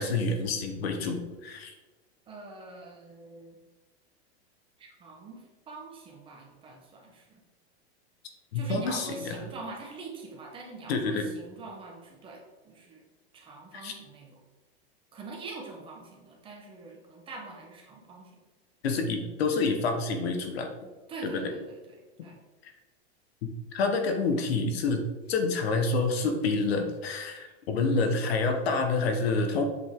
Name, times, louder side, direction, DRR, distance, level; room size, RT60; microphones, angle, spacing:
voice 1, 0.0-1.7 8.5-9.4 10.9-11.3 13.8-13.9 18.8-20.7 21.2-21.5 22.6-22.7 23.7-25.0 25.3-29.6, left 3 dB, 70° left, 5 dB, 1.4 m, -28 dB
voice 2, 2.3-3.6 4.8-7.4 8.5-13.0 13.3-14.4 15.1-18.3 21.1-21.9 22.2-22.4, right 3 dB, 15° right, 0 dB, 1.2 m, -44 dB
7.9 x 5.4 x 3.8 m, 1.2 s
supercardioid pair, 165°, 32 cm